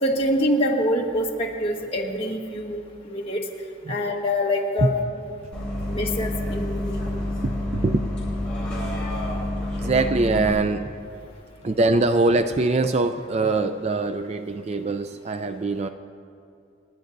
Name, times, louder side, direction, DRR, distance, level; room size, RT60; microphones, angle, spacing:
voice 1, 0.0-3.4 3.9-4.9 5.9-7.0, left 1 dB, 30° left, -1 dB, 1.5 m, -25 dB
Bus, 5.5-10.5, left 1 dB, 5° left, 3.8 m, -28 dB
voice 2, 7.4-8.1 9.8-11.0 11.6-15.9, right 3 dB, 30° right, 9 dB, 0.3 m, -23 dB
29.5 x 10.5 x 2.6 m, 2.5 s
head